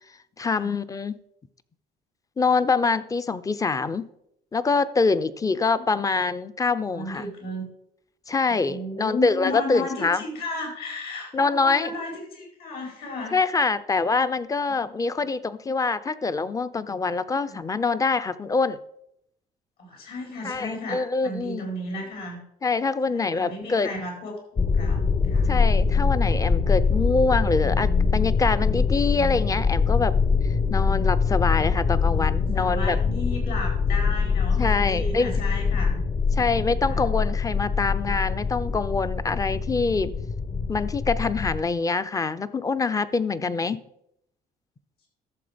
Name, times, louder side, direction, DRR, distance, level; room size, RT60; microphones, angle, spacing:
voice 1, 0.4-1.1 2.4-4.1 4.5-7.2 8.3-10.2 11.3-11.9 13.3-18.8 20.4-21.7 22.6-23.9 25.5-30.2 30.7-33.0 34.6-35.3 36.3-40.1 40.7-43.8, left 4 dB, 20° left, 14 dB, 0.6 m, -25 dB
voice 2, 6.9-7.6 8.5-13.4 14.8-14.9 17.4-17.6 19.8-22.4 23.1-25.5 32.5-35.9 36.9-37.0, left 1 dB, 65° left, 1 dB, 4.5 m, -34 dB
sound 1, 24.6-41.6, left 5 dB, 35° left, 0.9 m, -23 dB
13.0 x 6.9 x 5.1 m, 0.77 s
cardioid pair, 110°, 17 cm